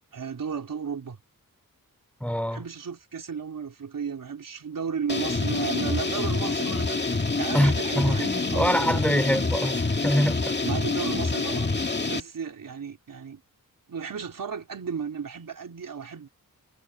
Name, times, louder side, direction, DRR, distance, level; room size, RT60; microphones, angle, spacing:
voice 1, 0.1-1.2 2.5-9.0 10.6-11.7 12.1-13.4 13.9-16.3, right 6 dB, 70° right, 3.6 m, -34 dB
voice 2, 2.2-2.6 7.5-10.6, equal, 5° left, 3.0 m, -25 dB
sound 1, 5.1-12.2, left 3 dB, 30° left, 2.1 m, -27 dB
wide cardioid pair, 125°, 34 cm